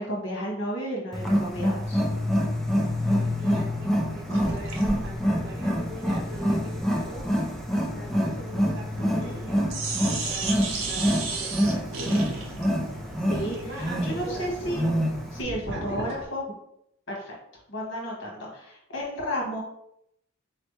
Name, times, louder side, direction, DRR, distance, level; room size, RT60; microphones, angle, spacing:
voice 1, 0.0-2.0 9.0-9.4 13.3-14.9 15.3-16.4 17.1-17.4 17.7-19.6, equal, 60° left, -2 dB, 1.5 m, -32 dB
Wild animals, 1.1-15.4, equal, ahead, 0.5 m, -27 dB
voice 2, 3.0-7.3 7.9-12.4 13.5-15.0 15.4-16.2, right 1 dB, 60° right, -1 dB, 1.1 m, -42 dB
sound 1, 4.3-9.4 9.7-16.2, right 3 dB, 75° right, 0.8 m, -35 dB
4.2 x 3.1 x 3.2 m, 0.75 s
head